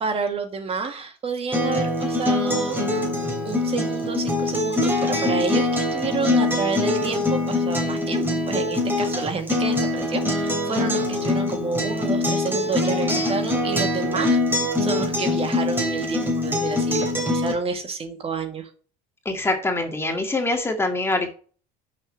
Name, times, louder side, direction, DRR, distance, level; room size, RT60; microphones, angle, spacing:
voice 1, 0.0-2.8 3.4-18.7, right 4 dB, 30° right, 6 dB, 2.0 m, -29 dB
Acoustic guitar, 1.5-17.5, left 2 dB, 10° right, 3.2 m, -23 dB
voice 2, 19.3-21.3, left 2 dB, 15° left, 4 dB, 2.0 m, -24 dB
6.8 x 5.4 x 6.5 m, 0.40 s
cardioid pair, 120°, 18 cm